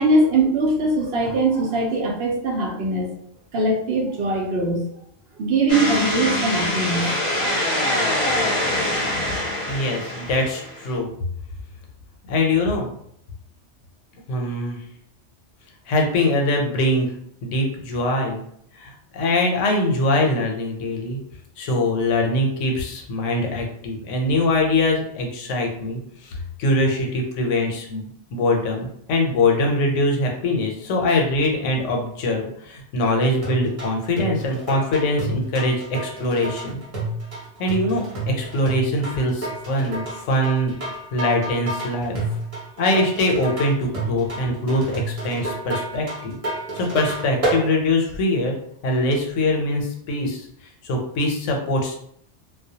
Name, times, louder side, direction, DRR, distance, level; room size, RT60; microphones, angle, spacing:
voice 1, 0.0-3.1 3.5-4.8 5.4-7.1 7.6-8.0, right 2 dB, 65° right, -1 dB, 0.8 m, -21 dB
sound 1, 5.7-10.9, left 1 dB, 35° left, 0.7 m, -24 dB
voice 2, 9.7-11.1 12.3-12.9 14.3-14.8 15.9-17.1 17.4-18.4 18.7-21.2 21.6-36.8 37.6-40.7 41.1-42.4 42.8-46.3 46.7-48.6 48.8-50.5 50.8-51.9, left 1 dB, 85° left, 1 dB, 0.9 m, -23 dB
sound 2, 33.4-47.6, right 1 dB, 35° right, 0.7 m, -29 dB
2.2 x 2.1 x 2.7 m, 0.69 s
omnidirectional pair, 1.2 m